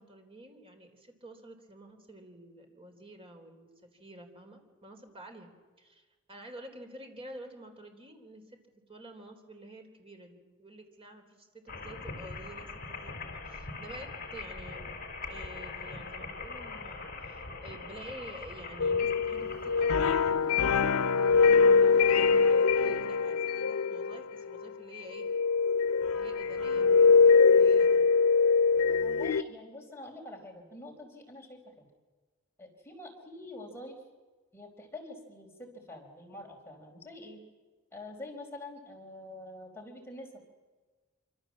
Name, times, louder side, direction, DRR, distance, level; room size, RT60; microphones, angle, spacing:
voice 1, 0.0-3.7 4.0-5.5 5.8-8.6 8.9-14.9 15.3-20.9 21.4-25.3 26.1-28.0, right 1 dB, 25° right, 4 dB, 4.0 m, -49 dB
sound 1, 11.7-20.3, left 3 dB, 45° left, 3.5 m, -42 dB
sound 2, 18.8-24.6 25.1-29.4, left 5 dB, 85° left, 0.8 m, -23 dB
voice 2, 29.0-31.9 32.6-34.0 34.5-37.4 37.9-40.3, left 2 dB, 10° left, 0 dB, 4.4 m, -46 dB
26.0 x 26.0 x 7.5 m, 1.3 s
head